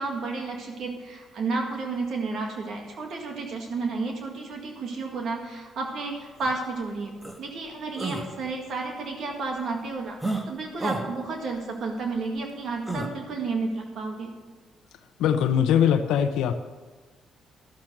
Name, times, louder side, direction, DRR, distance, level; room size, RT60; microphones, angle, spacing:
voice 1, 0.0-7.1 7.4-14.3, right 3 dB, 65° right, 2 dB, 1.9 m, -32 dB
sound 1, 6.4-6.5 7.2-7.4 8.0-8.3 10.2-10.4 10.8-11.0 12.9-13.1, right 2 dB, 10° right, 1.5 m, -30 dB
voice 2, 15.2-16.6, left 8 dB, 85° left, 8 dB, 0.7 m, -21 dB
13.0 x 7.3 x 6.5 m, 1.3 s
cardioid pair, 90°, 0 cm